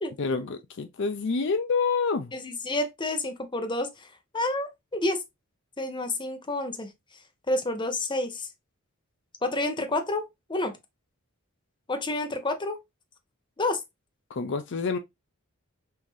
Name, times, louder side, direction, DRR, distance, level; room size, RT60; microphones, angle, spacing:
voice 1, 0.2-2.3 14.3-15.0, left 4 dB, 55° left, 0.5 m, -27 dB
voice 2, 2.3-4.1 4.3-5.2 5.8-6.9 7.5-8.5 9.4-10.2 10.5-10.8 11.9-12.8 13.6-13.8, left 2 dB, 20° left, 0.7 m, -29 dB
5.5 x 2.7 x 3.1 m
head